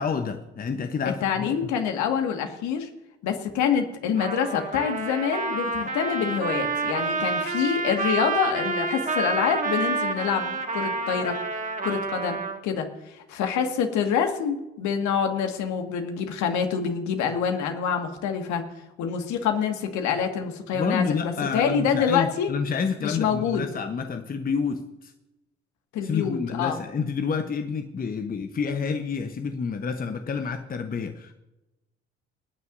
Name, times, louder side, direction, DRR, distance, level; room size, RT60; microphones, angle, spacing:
voice 1, 0.0-1.6 20.7-25.1 26.0-31.3, left 5 dB, 25° left, 7 dB, 1.0 m, -29 dB
voice 2, 1.2-2.9 3.2-11.4 11.8-12.9 13.3-18.6 19.0-22.5 23.0-23.7 25.9-26.8, left 7 dB, 55° left, 5 dB, 2.0 m, -26 dB
Trumpet, 4.2-12.6, right 4 dB, 25° right, 1.9 m, -29 dB
28.0 x 9.5 x 2.7 m, 0.97 s
figure-of-eight pair, 55°, 34 cm